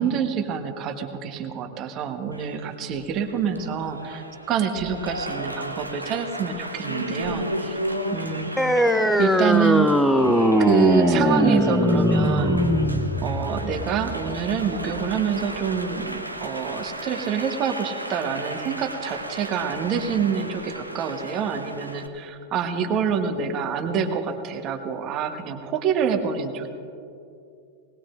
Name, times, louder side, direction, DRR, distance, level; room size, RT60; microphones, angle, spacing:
voice 1, 0.0-7.8 8.1-8.5 9.2-9.9 10.6-12.6 13.2-26.7, right 7 dB, 35° right, 6 dB, 1.3 m, -26 dB
Applause, 2.3-22.1, right 1 dB, 85° right, 0.7 m, -33 dB
sound 1, 8.6-15.6, equal, ahead, 0.6 m, -21 dB
20.5 x 19.0 x 2.6 m, 2.5 s
figure-of-eight pair, 90°, 0 cm